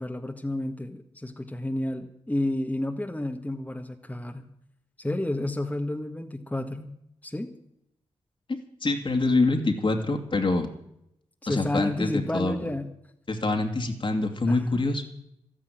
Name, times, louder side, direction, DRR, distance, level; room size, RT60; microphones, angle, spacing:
voice 1, 0.0-4.5 5.0-6.9 7.2-7.5 11.4-12.9 14.5-14.9, left 1 dB, 10° left, 3 dB, 1.8 m, -31 dB
voice 2, 8.5-10.7 11.5-12.6 13.3-15.1, left 2 dB, 45° left, 4 dB, 2.6 m, -25 dB
13.0 x 10.5 x 9.4 m, 0.77 s
supercardioid pair, 40°, 12 cm